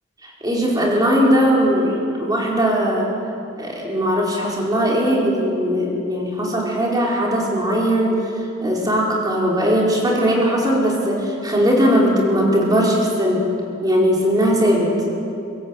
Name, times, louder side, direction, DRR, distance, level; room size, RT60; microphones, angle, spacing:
voice 1, 0.2-3.1 3.6-8.1 8.6-13.4 13.8-14.9, equal, 20° right, -3 dB, 4.7 m, -19 dB
24.5 x 15.0 x 8.2 m, 2.6 s
head